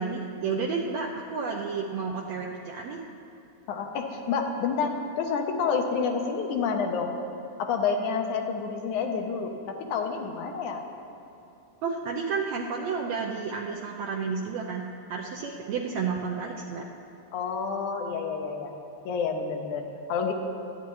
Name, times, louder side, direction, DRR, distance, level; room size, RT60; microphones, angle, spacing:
voice 1, 0.0-3.0 11.8-16.9, right 5 dB, 75° right, -1 dB, 1.8 m, -31 dB
voice 2, 3.7-7.1 7.6-10.8 17.3-18.7 19.1-20.3, left 5 dB, 75° left, 3 dB, 2.3 m, -29 dB
25.5 x 9.6 x 3.1 m, 2.8 s
omnidirectional pair, 3.6 m